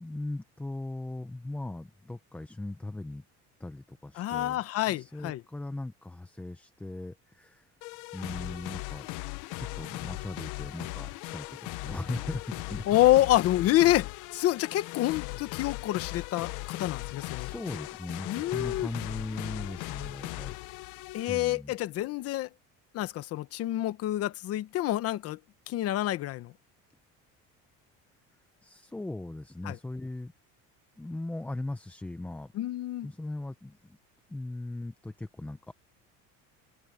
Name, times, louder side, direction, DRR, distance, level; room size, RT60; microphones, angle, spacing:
voice 1, 0.0-3.2 3.6-4.6 4.9-7.7 8.1-9.1 9.6-12.8 17.1-20.6 21.3-21.7 28.6-30.3 31.0-32.5 33.0-34.0 34.3-35.7, left 2 dB, 5° left, 0.6 m, -39 dB
voice 2, 4.1-5.4 12.9-17.5 18.2-18.9 21.1-22.5 22.9-25.4 25.7-26.5 29.6-29.8 32.5-33.1, left 14 dB, 50° left, 1.1 m, -27 dB
sound 1, 7.8-21.5, left 21 dB, 70° left, 0.7 m, -38 dB
cardioid pair, 165°, 32 cm